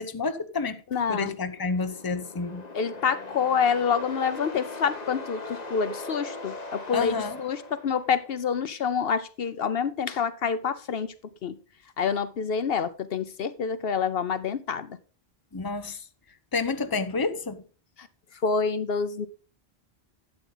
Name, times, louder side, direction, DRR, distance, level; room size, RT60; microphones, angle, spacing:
voice 1, 0.0-0.8 1.1-2.6 6.9-7.4 15.5-16.0 16.5-17.6, left 4 dB, 25° left, 0.9 m, -29 dB
voice 2, 0.9-1.3 2.7-11.1 11.4-11.6 12.0-15.0 18.0-18.1 18.4-19.3, left 6 dB, 70° left, 1.0 m, -27 dB
sound 1, 1.3-8.4, left 2 dB, 40° left, 1.3 m, -40 dB
12.5 x 8.3 x 3.9 m
omnidirectional pair, 1.0 m